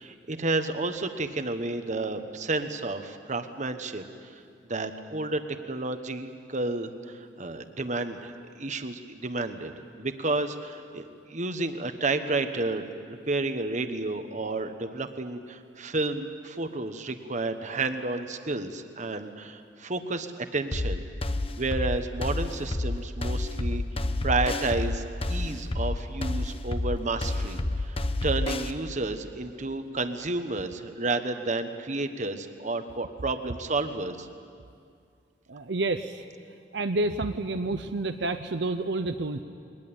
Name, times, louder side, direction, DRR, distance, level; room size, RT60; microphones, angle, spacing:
voice 1, 0.0-4.4 4.7-9.7 10.0-21.0 21.6-23.8 24.2-34.3, right 2 dB, 45° right, 8 dB, 1.2 m, -31 dB
sound 1, 20.7-28.7, left 2 dB, 30° left, 0.9 m, -29 dB
voice 2, 35.5-36.2 36.7-39.4, right 2 dB, 75° right, 7 dB, 0.8 m, -29 dB
22.0 x 20.0 x 8.8 m, 2.3 s
head